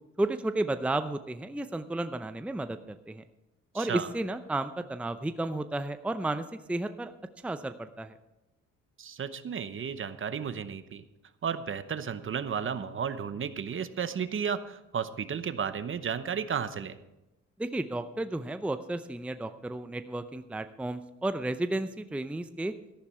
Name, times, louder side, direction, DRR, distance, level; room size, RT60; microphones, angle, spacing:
voice 1, 0.2-3.2 3.7-7.1 7.4-8.2 17.6-22.7, right 2 dB, 5° right, 10 dB, 0.6 m, -32 dB
voice 2, 3.7-4.1 9.0-11.0 11.4-17.0, right 7 dB, 45° right, 12 dB, 0.9 m, -33 dB
13.5 x 11.0 x 4.4 m, 0.94 s
cardioid pair, 90°, 30 cm